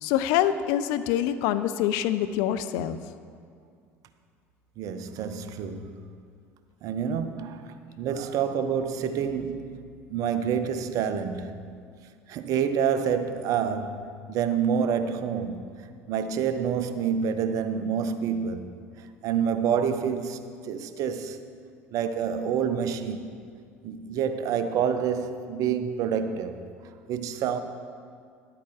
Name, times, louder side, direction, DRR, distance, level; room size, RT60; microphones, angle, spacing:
voice 1, 0.0-3.0, left 11 dB, 60° left, 0.5 m, -25 dB
voice 2, 4.8-6.1 6.8-9.8 10.1-11.8 12.3-18.7 19.0-21.4 21.9-23.3 23.8-26.6 27.1-27.6, right 7 dB, 50° right, 0.6 m, -28 dB
10.5 x 8.5 x 4.7 m
figure-of-eight pair, 60°, 8 cm